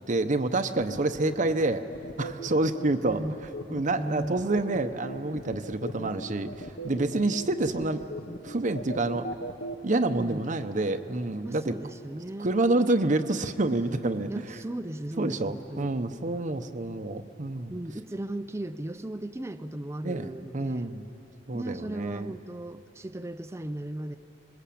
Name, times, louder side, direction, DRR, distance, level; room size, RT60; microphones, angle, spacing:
voice 1, 0.1-1.8 2.2-3.2 3.7-8.0 8.4-9.3 9.8-11.7 12.4-14.6 15.2-17.8 20.0-21.0 21.5-22.3, right 2 dB, 45° right, 8 dB, 0.9 m, -28 dB
sound 1, 0.9-9.8, right 1 dB, 70° left, 1.2 m, -38 dB
voice 2, 3.0-3.3 3.9-4.4 9.9-10.5 11.4-12.5 14.3-15.9 17.7-20.9 21.5-24.1, right 1 dB, 15° right, 9 dB, 0.6 m, -36 dB
26.5 x 21.0 x 8.6 m, 2.9 s
head